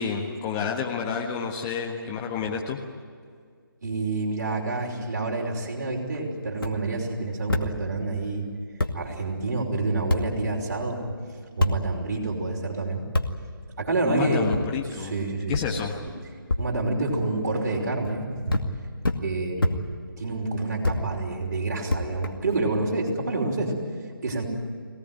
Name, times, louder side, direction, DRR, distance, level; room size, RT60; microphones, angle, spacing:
voice 1, 0.0-2.8 14.0-15.1 15.5-15.9, left 6 dB, 15° left, 0 dB, 1.4 m, -29 dB
voice 2, 3.8-8.5 8.9-11.0 11.6-13.0 13.8-14.5 14.9-15.6 16.6-18.7 19.2-19.8 20.2-23.7 24.2-24.5, right 2 dB, 45° right, 0 dB, 5.4 m, -28 dB
sound 1, 6.5-6.7 7.5-7.7 8.4-8.5 8.8-8.9 10.1-10.2 11.6-11.7 13.1-13.3 14.5-14.6 15.5-15.6 16.5-16.6 17.7-18.1 18.5-18.7 19.0-19.2 19.6-19.7 20.8-21.0 21.9-22.6, left 2 dB, 70° left, 2.2 m, -25 dB
22.5 x 19.0 x 9.5 m, 2.1 s
figure-of-eight pair, 155°, 12 cm